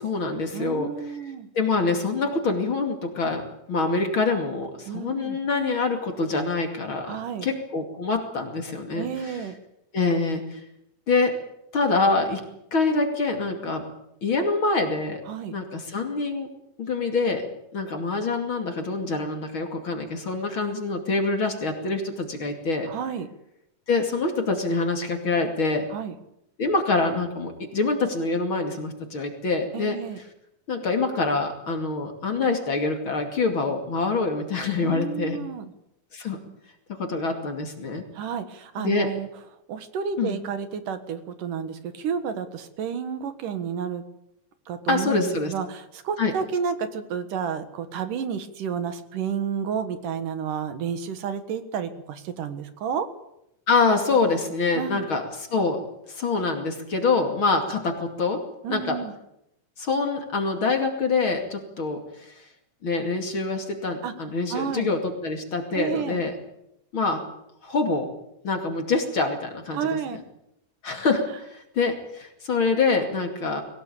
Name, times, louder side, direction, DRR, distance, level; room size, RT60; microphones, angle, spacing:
voice 1, 0.0-0.9 1.5-3.4 3.7-9.4 9.9-10.6 11.1-11.4 11.7-12.4 12.7-13.8 14.2-15.2 15.5-16.5 16.8-17.4 17.7-22.9 23.9-25.9 26.6-30.0 30.7-35.4 36.1-36.4 36.9-38.0 38.8-39.1 40.2-40.4 44.9-45.5 46.2-46.3 53.7-55.8 56.1-58.4 58.7-59.0 59.8-62.3 62.8-66.3 66.9-67.2 67.6-68.1 68.4-69.9 70.8-73.6, left 3 dB, 40° left, 4 dB, 3.0 m, -25 dB
voice 2, 0.5-1.5 4.9-5.4 7.1-7.5 8.9-9.5 15.3-15.6 22.9-23.3 25.9-26.1 29.7-30.2 34.8-35.6 38.1-39.3 39.7-44.0 44.7-53.1 54.7-55.1 58.6-59.1 64.0-64.1 64.5-64.9 65.7-66.2 69.7-70.2, right 7 dB, 75° right, 10 dB, 3.1 m, -31 dB
22.0 x 18.0 x 8.6 m, 0.82 s
omnidirectional pair, 3.9 m